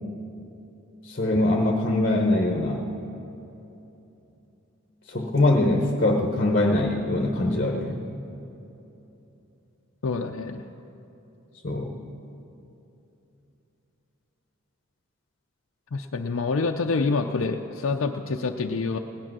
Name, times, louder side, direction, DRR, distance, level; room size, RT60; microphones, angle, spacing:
voice 1, 1.1-2.8 5.1-8.0 11.6-11.9, left 2 dB, 40° left, 2 dB, 0.9 m, -23 dB
voice 2, 10.0-10.6 15.9-19.0, left 4 dB, 65° left, 3 dB, 0.5 m, -27 dB
17.0 x 11.5 x 6.1 m, 3.0 s
head